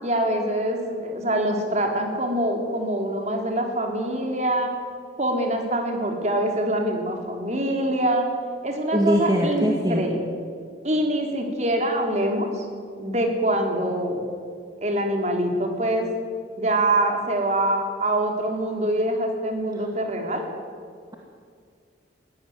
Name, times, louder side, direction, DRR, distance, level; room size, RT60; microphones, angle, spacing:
voice 1, 0.0-4.7 5.2-8.3 8.6-10.2 10.8-12.7 13.0-14.2 14.8-16.1 16.6-20.4, right 1 dB, 35° right, 3 dB, 3.6 m, -24 dB
voice 2, 8.9-10.1, equal, 20° right, 0 dB, 2.1 m, -22 dB
21.5 x 17.0 x 9.6 m, 2.1 s
head